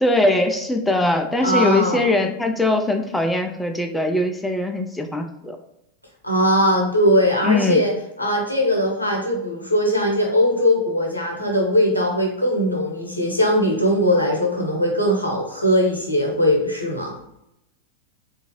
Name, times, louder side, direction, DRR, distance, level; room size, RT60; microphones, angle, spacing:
voice 1, 0.0-5.6 7.4-7.8, left 2 dB, 5° left, 4 dB, 0.4 m, -21 dB
voice 2, 1.4-2.1 6.2-7.9 8.2-17.2, equal, 85° left, 0 dB, 0.8 m, -20 dB
3.6 x 2.5 x 2.9 m, 0.83 s
figure-of-eight pair, 90°, 0 cm